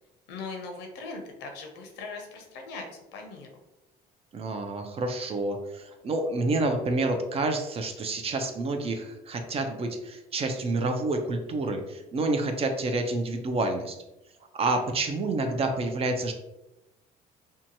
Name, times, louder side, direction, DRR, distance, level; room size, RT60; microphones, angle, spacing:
voice 1, 0.3-2.8 3.1-3.5, left 4 dB, 85° left, 3 dB, 0.6 m, -39 dB
voice 2, 4.3-13.9 14.5-16.3, right 2 dB, 35° right, 5 dB, 0.4 m, -28 dB
2.7 x 2.2 x 2.7 m, 0.94 s
cardioid pair, 110°, 17 cm